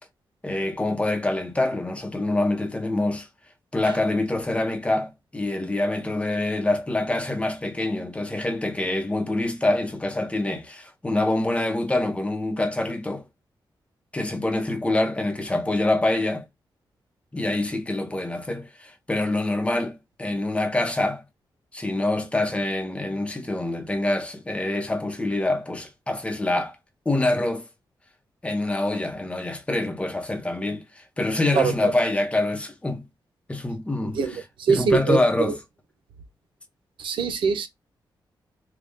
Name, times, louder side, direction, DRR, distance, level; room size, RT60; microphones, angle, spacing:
voice 1, 0.4-3.3 3.7-13.3 14.1-16.5 17.3-21.2 21.7-26.8 27.0-27.7 28.4-33.1 33.5-34.2 34.7-35.6, left 2 dB, 15° left, 0.8 m, -25 dB
voice 2, 31.5-31.9 34.1-35.5 37.0-37.7, right 5 dB, 85° right, 0.7 m, -23 dB
3.9 x 2.3 x 3.5 m
wide cardioid pair, 135°, 8 cm